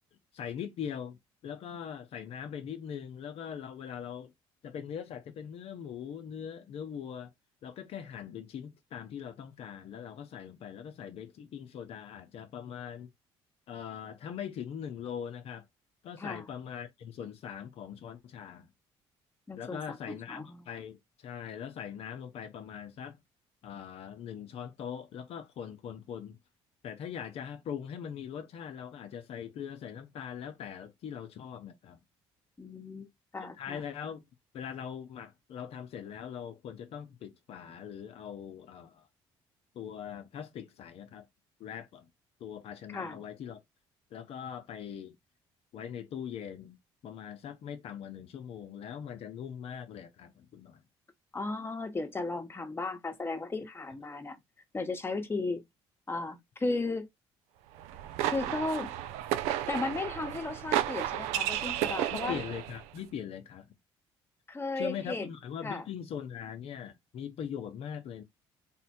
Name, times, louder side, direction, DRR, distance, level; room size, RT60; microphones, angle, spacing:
voice 1, 0.3-4.3 4.6-7.3 7.6-13.1 13.7-15.7 16.0-18.7 19.6-23.2 23.6-26.4 26.8-32.0 33.6-34.3 34.5-39.1 39.7-41.3 41.6-42.1 42.4-43.6 44.1-45.2 45.7-46.8 47.0-50.8 62.1-63.7 64.8-68.2, left 8 dB, 65° left, 0.6 m, -41 dB
voice 2, 19.5-20.7 32.6-33.1 33.3-33.8 42.9-43.2 51.3-54.4 54.7-55.6 56.1-57.1 58.3-58.9 59.7-62.4 64.5-65.3 65.6-65.8, left 3 dB, 20° left, 1.0 m, -35 dB
sound 1, 57.8-62.8, right 12 dB, 90° right, 0.4 m, -33 dB
3.5 x 2.1 x 4.2 m
supercardioid pair, 80°, 11 cm